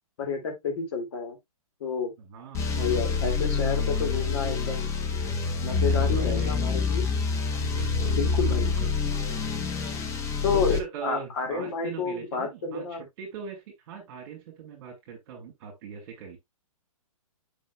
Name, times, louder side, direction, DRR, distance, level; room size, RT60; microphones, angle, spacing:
voice 1, 0.2-1.4 1.8-2.1 2.7-4.9 5.6-7.0 8.1-8.7 10.4-13.0, left 5 dB, 50° left, 2.4 m, -30 dB
voice 2, 2.2-4.1 5.9-6.6 7.6-8.9 10.5-16.4, right 7 dB, 40° right, 2.5 m, -41 dB
sound 1, 2.5-10.8, left 4 dB, 15° left, 1.1 m, -27 dB
8.9 x 5.6 x 2.3 m
figure-of-eight pair, 125°, 19 cm